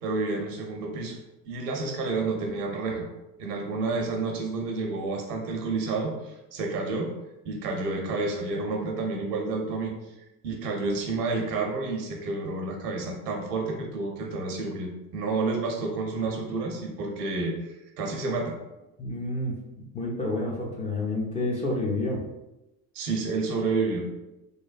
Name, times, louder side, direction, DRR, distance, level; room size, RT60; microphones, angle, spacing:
voice 1, 0.0-1.2 1.5-3.1 3.4-7.1 7.5-9.9 10.4-18.6 22.9-24.1, right 3 dB, 70° right, 2 dB, 0.7 m, -30 dB
voice 2, 19.0-22.3, left 2 dB, 15° left, -4 dB, 0.3 m, -29 dB
3.1 x 2.2 x 2.4 m, 0.95 s
figure-of-eight pair, 60°, 49 cm